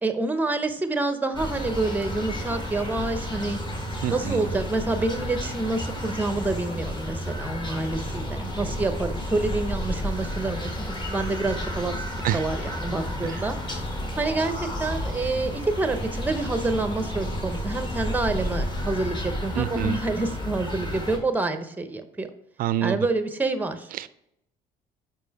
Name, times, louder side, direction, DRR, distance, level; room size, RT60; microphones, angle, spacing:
voice 1, 0.0-3.6 4.1-13.6 14.2-22.3 22.8-23.9, right 2 dB, 10° right, 9 dB, 0.6 m, -28 dB
sound 1, 1.3-21.2, equal, 25° left, 1.4 m, -31 dB
voice 2, 4.0-4.5 12.2-12.4 13.2-13.5 19.6-20.0 22.6-23.1 23.9-24.1, right 11 dB, 55° right, 15 dB, 0.4 m, -27 dB
5.3 x 4.6 x 4.6 m, 0.80 s
cardioid pair, 110°, 17 cm